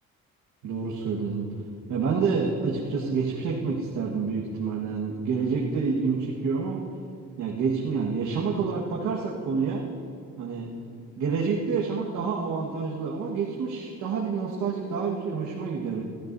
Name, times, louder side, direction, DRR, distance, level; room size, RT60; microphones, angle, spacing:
voice 1, 0.6-1.4 1.9-6.8 7.4-9.8 10.4-10.7 11.2-16.0, right 5 dB, 80° right, -4 dB, 1.6 m, -28 dB
22.5 x 13.5 x 2.7 m, 2.5 s
cardioid pair, 90°, 30 cm